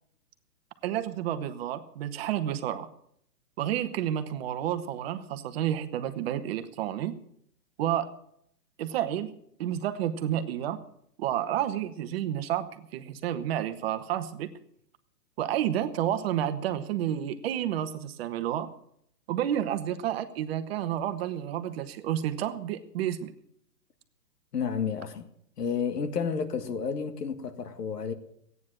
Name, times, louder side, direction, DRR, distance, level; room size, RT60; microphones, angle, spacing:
voice 1, 0.8-2.9 3.6-7.2 7.8-8.1 8.8-10.8 11.2-14.5 15.4-18.7 19.3-23.3, right 11 dB, 40° right, 1.2 m, -30 dB
voice 2, 24.5-25.2 25.6-28.1, left 6 dB, 75° left, 1.9 m, -31 dB
14.0 x 9.6 x 7.6 m
hypercardioid pair, 145°, 48 cm